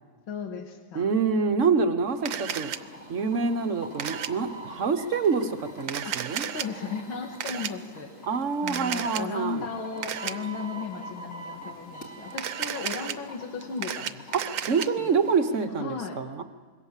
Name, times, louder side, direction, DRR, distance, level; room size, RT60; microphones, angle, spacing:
voice 1, 0.3-1.1 6.0-8.1 8.6-14.3 15.0-15.1 15.8-16.2, left 5 dB, 85° left, 5 dB, 2.4 m, -36 dB
voice 2, 0.9-2.7 3.1-6.5 8.3-9.6 14.3-16.4, right 5 dB, 45° right, 9 dB, 1.2 m, -26 dB
sound 1, 2.1-15.6, right 1 dB, 40° left, 3.1 m, -44 dB
Camera, 2.3-2.8 4.0-4.3 5.8-6.7 7.4-7.7 8.7-9.2 10.0-10.3 12.3-13.1 13.6-14.9, right 10 dB, 75° right, 1.6 m, -32 dB
25.5 x 22.0 x 7.4 m, 1.5 s
omnidirectional pair, 2.1 m